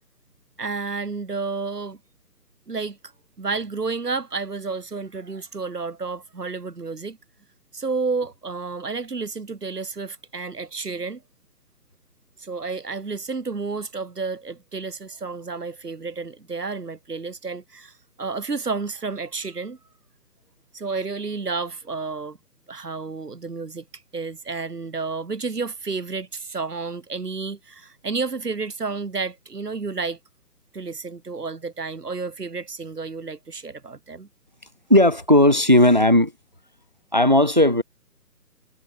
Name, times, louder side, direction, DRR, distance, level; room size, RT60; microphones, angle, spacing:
voice 1, 0.6-2.0 2.7-3.1 3.4-7.2 7.7-11.2 12.4-19.8 20.7-22.4 22.7-23.8 24.1-30.2 30.7-34.3, right 4 dB, 80° right, 2.1 m, -31 dB
voice 2, 34.9-36.3 37.1-37.8, left 1 dB, 30° right, 0.4 m, -16 dB
figure-of-eight pair, 145°, 47 cm